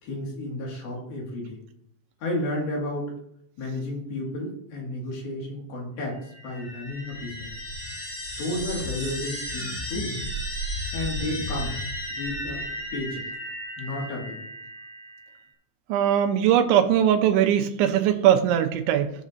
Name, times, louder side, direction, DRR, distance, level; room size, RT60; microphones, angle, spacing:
voice 1, 0.0-1.6 2.2-3.1 3.6-6.2 6.4-7.5 8.4-10.1 10.9-11.7 12.1-12.6 12.9-13.2 13.8-14.4, left 1 dB, 60° left, -2 dB, 3.6 m, -32 dB
sound 1, 6.1-15.4, equal, 15° left, 2.4 m, -34 dB
voice 2, 15.9-19.1, right 10 dB, 90° right, 7 dB, 3.1 m, -20 dB
15.5 x 7.3 x 2.7 m, 0.72 s
omnidirectional pair, 5.3 m